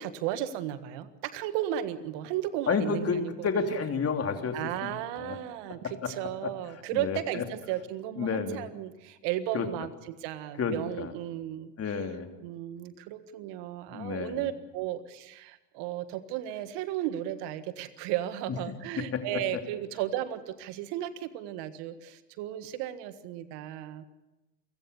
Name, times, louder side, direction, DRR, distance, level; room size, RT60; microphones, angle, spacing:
voice 1, 0.0-3.5 4.5-11.7 12.4-24.0, right 12 dB, 55° right, 12 dB, 1.7 m, -35 dB
voice 2, 2.7-5.4 5.8-6.1 6.4-6.5 6.9-7.4 8.2-8.7 9.5-9.7 10.6-11.1 11.8-12.3 13.9-14.4 19.0-19.4, left 5 dB, 30° left, 5 dB, 3.2 m, -31 dB
29.5 x 16.0 x 7.0 m, 1.0 s
hypercardioid pair, 95°, 49 cm